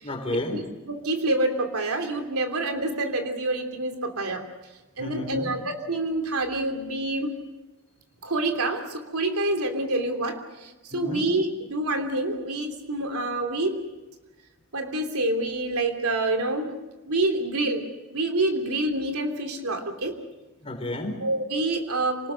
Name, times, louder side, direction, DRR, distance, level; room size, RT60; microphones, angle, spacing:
voice 1, 0.0-0.6 5.0-5.5 10.9-11.3 20.6-21.2, left 1 dB, 25° left, 3 dB, 4.2 m, -31 dB
voice 2, 0.5-4.5 5.0-7.3 8.2-10.4 10.9-13.8 14.7-16.8 17.1-20.2 21.2-22.3, right 2 dB, 90° right, 5 dB, 3.1 m, -27 dB
27.5 x 19.5 x 6.6 m, 1.1 s
head